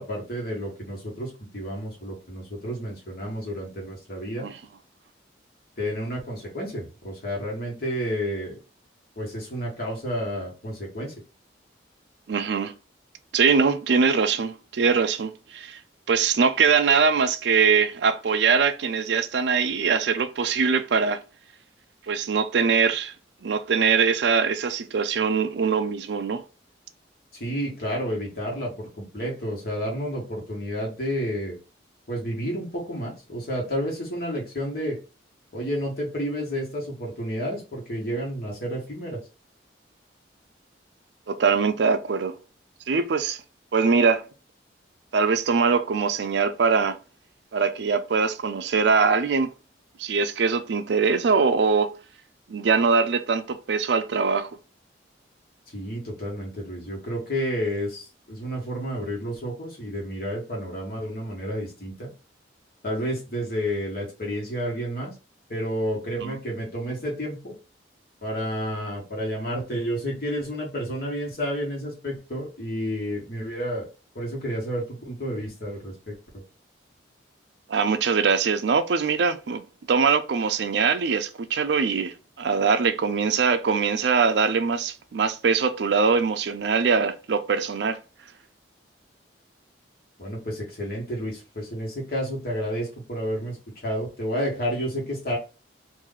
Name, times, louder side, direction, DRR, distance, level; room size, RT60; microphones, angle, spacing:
voice 1, 0.0-4.4 5.8-8.6 9.2-11.1 27.4-31.6 32.1-35.0 35.5-39.2 55.7-62.1 62.8-65.1 65.5-67.5 68.2-73.9 74.1-76.2 90.2-93.6 93.8-95.4, equal, 55° left, 1.5 m, -30 dB
voice 2, 12.3-12.7 13.3-15.8 16.1-21.2 22.1-23.1 23.4-26.4 41.3-42.4 42.9-43.4 43.7-44.2 45.1-47.0 47.5-49.5 50.0-51.9 52.5-54.5 66.2-66.4 77.7-88.0, right 5 dB, 70° right, 0.4 m, -22 dB
3.0 x 2.6 x 3.8 m
head